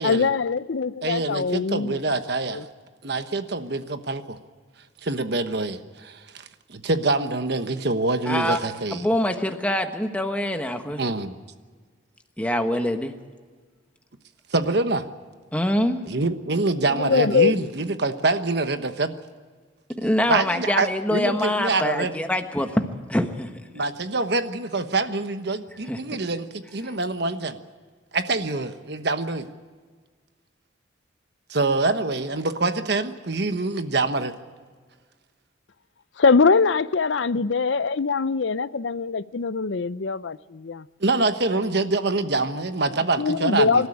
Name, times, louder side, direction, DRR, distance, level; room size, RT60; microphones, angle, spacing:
voice 1, 0.0-2.0 2.4-2.6 16.9-17.6 36.2-40.9 43.2-43.9, left 4 dB, 70° left, 0.6 m, -22 dB
voice 2, 1.0-2.6 3.0-4.4 5.0-6.4 6.7-9.0 11.0-11.3 14.5-15.0 16.1-19.1 20.0-22.1 23.7-27.6 28.1-29.5 31.5-34.3 41.0-43.9, right 3 dB, 55° right, 1.2 m, -25 dB
voice 3, 8.2-8.6 8.9-11.0 12.4-13.1 15.5-16.0 20.0-23.5 25.9-26.0 26.8-26.9, left 1 dB, 5° left, 1.3 m, -24 dB
26.0 x 13.0 x 9.9 m
head